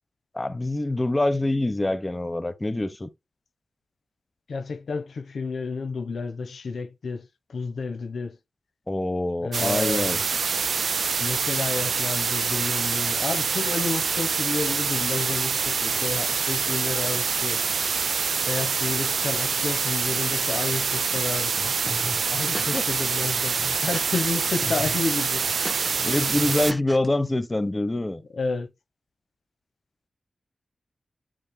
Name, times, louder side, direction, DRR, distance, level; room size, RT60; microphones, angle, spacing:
voice 1, 0.3-3.1 8.9-10.2 22.7-22.8 26.0-28.2, left 2 dB, 20° left, 0.9 m, -25 dB
voice 2, 4.5-8.4 9.4-10.2 11.2-17.6 18.5-21.7 22.3-25.6 28.3-28.7, left 4 dB, 90° left, 1.0 m, -31 dB
sound 1, 9.5-26.7, right 5 dB, 80° right, 0.4 m, -26 dB
sound 2, 21.9-22.9 23.2-24.3 24.6-25.0 25.3-27.1, equal, 5° left, 0.3 m, -36 dB
8.4 x 6.3 x 2.2 m
wide cardioid pair, 120°, 0 cm